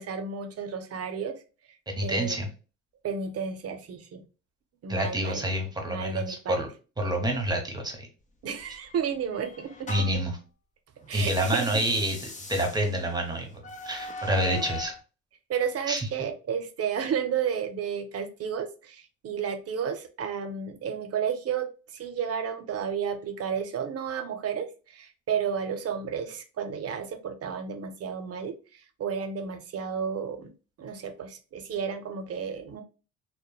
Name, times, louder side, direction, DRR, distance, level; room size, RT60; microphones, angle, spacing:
voice 1, 0.0-1.4 2.0-2.4 3.0-4.2 4.8-5.5 5.9-6.6 8.4-10.2 11.0-11.6 14.3-14.6 15.5-30.5 30.8-32.8, right 7 dB, 55° right, 8 dB, 0.5 m, -32 dB
voice 2, 1.9-2.5 4.9-6.7 7.0-8.1 9.9-10.4 11.1-14.9 15.9-16.1, right 1 dB, 15° right, 3 dB, 0.8 m, -28 dB
sound 1, 8.5-10.3 11.0-15.0, left 3 dB, 25° left, 0.6 m, -41 dB
2.9 x 2.1 x 2.2 m, 0.34 s
cardioid pair, 90°, 30 cm